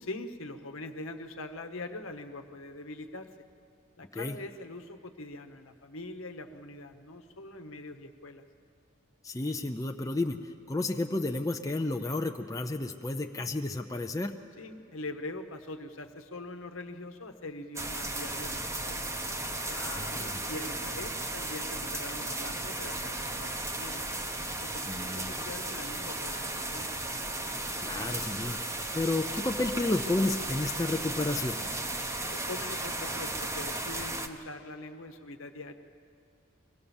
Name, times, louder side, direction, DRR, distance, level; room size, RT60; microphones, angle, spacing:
voice 1, 0.0-3.3 4.0-8.4 14.6-19.0 19.7-24.0 24.6-26.9 32.3-35.7, left 2 dB, 70° left, 6 dB, 1.1 m, -43 dB
voice 2, 9.2-10.4 10.7-14.3 19.7-20.4 24.9-25.4 27.8-31.7, left 2 dB, 15° left, 4 dB, 0.5 m, -32 dB
sound 1, 17.8-34.3, right 2 dB, 15° right, 0.8 m, -35 dB
24.0 x 18.0 x 7.1 m, 2.4 s
head